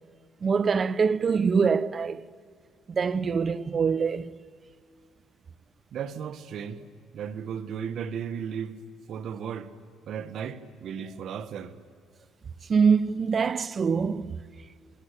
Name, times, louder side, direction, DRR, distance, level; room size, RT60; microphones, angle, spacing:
voice 1, 0.4-2.2 2.9-4.3 12.7-14.4, right 5 dB, 40° right, 0.7 m, -24 dB
voice 2, 5.9-6.8 7.1-8.8 9.1-9.7 10.1-11.8, right 7 dB, 65° right, 1.5 m, -35 dB
28.0 x 23.0 x 8.4 m
cardioid pair, 85°, 0 cm